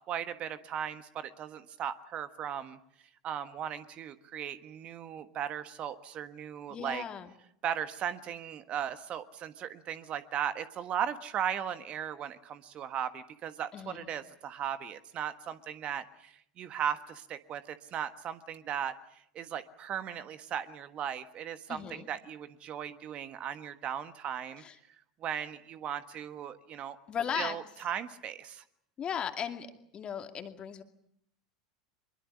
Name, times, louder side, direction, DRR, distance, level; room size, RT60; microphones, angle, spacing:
voice 1, 0.1-2.8 3.2-7.0 7.6-24.6 25.2-27.0 27.3-28.6, right 9 dB, 35° right, 11 dB, 1.4 m, -37 dB
voice 2, 6.7-7.3 13.7-14.1 21.7-22.1 24.6-24.8 27.1-27.6 29.0-30.8, left 8 dB, 30° left, 6 dB, 2.5 m, -37 dB
24.5 x 22.5 x 8.5 m, 0.72 s
figure-of-eight pair, 80°, 3 cm